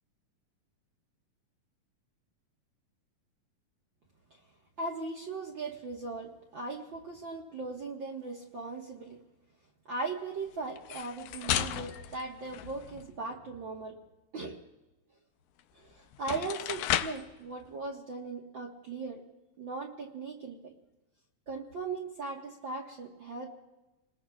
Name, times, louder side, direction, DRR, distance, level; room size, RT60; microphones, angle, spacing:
voice 1, 4.8-9.2 9.9-14.0 14.3-14.6 15.7-19.2 19.6-20.7 21.5-23.5, right 3 dB, 50° right, -1 dB, 1.5 m, -38 dB
sound 1, 10.8-13.2 15.6-15.7 16.1-17.3, left 11 dB, 80° left, 2.3 m, -34 dB
29.0 x 20.5 x 2.4 m, 1.0 s
omnidirectional pair, 3.8 m